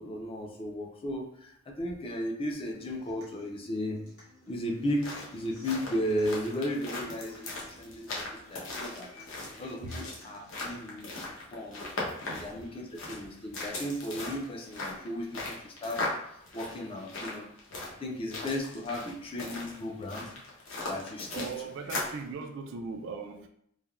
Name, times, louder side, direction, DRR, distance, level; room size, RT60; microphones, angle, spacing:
voice 1, 0.0-4.0 4.5-8.2 8.5-9.1 9.6-11.8 12.2-17.5 18.0-20.3 20.8-21.4, equal, 25° left, 0 dB, 0.4 m, -35 dB
Human voice / Acoustic guitar, 2.7-10.7, left 1 dB, 85° left, 1.3 m, -55 dB
sound 1, 4.8-22.2, left 2 dB, 65° left, 0.7 m, -39 dB
voice 2, 21.3-23.5, right 4 dB, 65° right, 6 dB, 0.3 m, -39 dB
3.2 x 2.1 x 2.4 m, 0.72 s
head